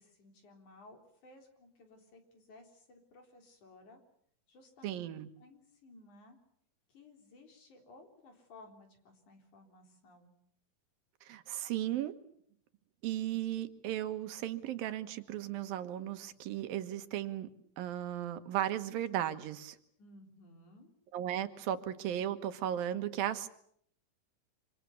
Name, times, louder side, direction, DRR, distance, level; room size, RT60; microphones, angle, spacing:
voice 1, 0.0-4.0 4.5-5.1 5.4-6.4 6.9-10.3 20.0-20.9, left 2 dB, 60° left, 4 dB, 5.2 m, -58 dB
voice 2, 4.8-5.3 11.3-12.1 13.0-17.5 17.8-19.8 21.1-23.5, right 11 dB, 85° right, 9 dB, 3.1 m, -36 dB
26.5 x 26.0 x 7.1 m, 0.68 s
omnidirectional pair, 4.0 m